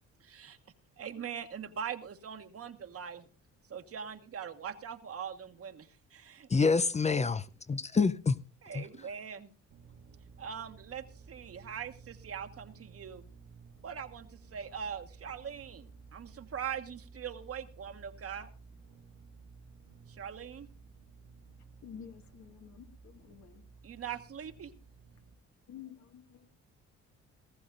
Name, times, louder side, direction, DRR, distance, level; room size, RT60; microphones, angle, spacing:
voice 1, 0.2-0.6 1.0-3.3 3.7-6.5 8.6-9.5 10.4-13.2 13.8-18.5 20.1-20.7 23.8-24.7, right 8 dB, 50° right, 1.4 m, -42 dB
voice 2, 6.5-8.4 8.7-9.1, left 4 dB, 25° left, 0.6 m, -28 dB
sound 1, 9.7-25.4, right 4 dB, 80° right, 3.0 m, -55 dB
voice 3, 21.8-23.6 25.7-26.5, left 8 dB, 65° left, 2.0 m, -50 dB
18.5 x 15.0 x 2.5 m
cardioid pair, 90°, 30 cm